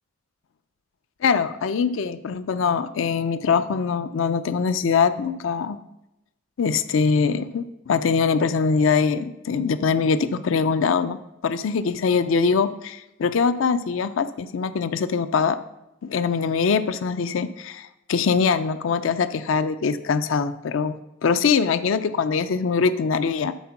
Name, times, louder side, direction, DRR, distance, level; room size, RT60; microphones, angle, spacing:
voice 1, 1.2-5.8 6.6-15.6 16.0-20.9 21.2-23.5, left 5 dB, 75° left, 13 dB, 0.4 m, -23 dB
11.0 x 4.3 x 5.8 m, 0.91 s
head